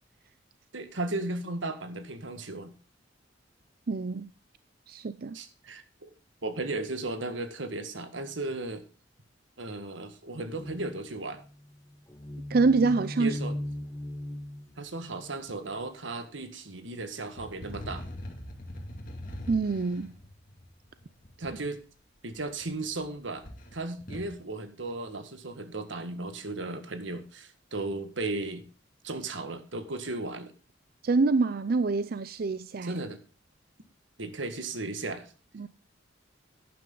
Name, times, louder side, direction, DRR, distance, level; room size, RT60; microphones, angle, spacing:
voice 1, 0.7-2.7 5.3-6.1 6.4-8.8 9.6-11.4 13.2-13.6 14.8-18.0 21.4-21.8 22.2-23.5 23.7-28.7 29.0-30.5 32.8-33.2 34.2-35.3, right 2 dB, 90° right, 1.7 m, -35 dB
voice 2, 3.9-4.3 4.9-5.4 12.5-13.4 19.5-20.1 31.0-33.0 35.6-35.7, right 3 dB, 55° right, 0.5 m, -26 dB
sound 1, 10.5-15.7, left 1 dB, 20° left, 1.4 m, -38 dB
sound 2, 17.4-21.5 22.3-23.1 23.4-24.3, left 1 dB, 50° left, 2.5 m, -42 dB
11.5 x 10.5 x 3.9 m
head